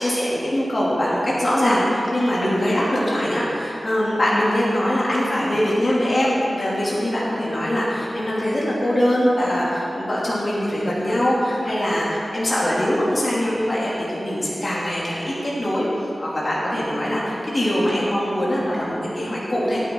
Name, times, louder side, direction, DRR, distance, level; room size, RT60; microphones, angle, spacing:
voice 1, 0.0-15.9 16.2-19.8, equal, 45° left, -7 dB, 3.0 m, -22 dB
17.5 x 9.7 x 3.9 m, 2.8 s
wide cardioid pair, 60°, 0 cm